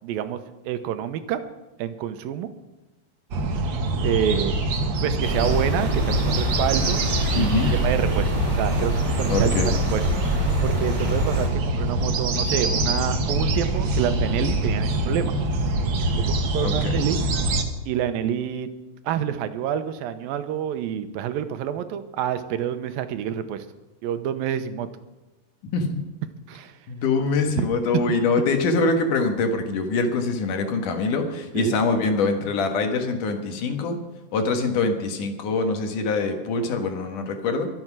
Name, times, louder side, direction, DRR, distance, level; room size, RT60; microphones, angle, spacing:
voice 1, 0.0-1.4 1.8-2.5 3.5-3.6 4.0-4.6 5.0-7.0 7.4-7.5 7.8-15.3 16.2-17.2 17.9-18.7 19.0-23.7 24.0-24.9 26.5-26.8 27.6-27.7 27.9-28.0 31.5-31.8, right 10 dB, 90° right, 10 dB, 2.7 m, -28 dB
sound 1, 3.3-17.6, right 2 dB, 60° right, 1.2 m, -24 dB
sound 2, 5.2-11.5, equal, 20° right, 3.5 m, -27 dB
voice 2, 7.4-7.7 9.3-9.7 16.6-16.9 25.7-26.0 26.9-34.0 34.3-37.7, left 3 dB, 65° left, 5 dB, 2.9 m, -24 dB
23.5 x 7.9 x 6.1 m, 1.1 s
omnidirectional pair, 4.0 m